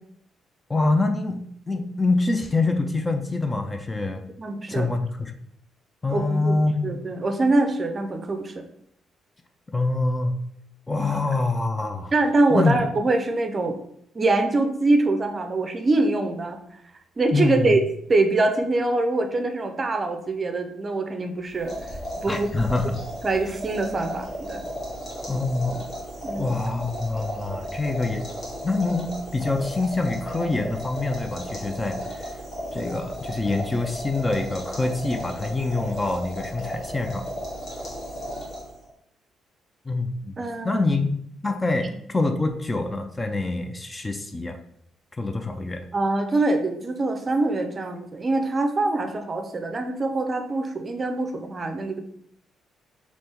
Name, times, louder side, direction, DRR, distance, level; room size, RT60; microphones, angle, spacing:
voice 1, 0.7-4.3 4.7-5.3 6.0-6.9 9.7-10.4 10.9-12.1 12.5-12.8 17.3-17.7 22.3-23.0 25.3-25.9 26.4-28.3 28.6-32.3 32.7-37.3 39.9-44.6 45.2-45.8, left 3 dB, 20° left, 5 dB, 0.4 m, -25 dB
voice 2, 4.4-4.9 6.1-6.5 6.8-8.6 12.1-13.8 14.1-16.6 17.2-17.8 18.1-21.7 22.2-22.5 23.2-24.6 26.2-26.5 40.4-40.8 45.9-52.0, right 2 dB, 35° right, 5 dB, 0.5 m, -24 dB
sound 1, 21.5-38.9, equal, 45° left, 1.4 m, -34 dB
3.4 x 3.0 x 2.9 m, 0.68 s
cardioid pair, 90°, 0 cm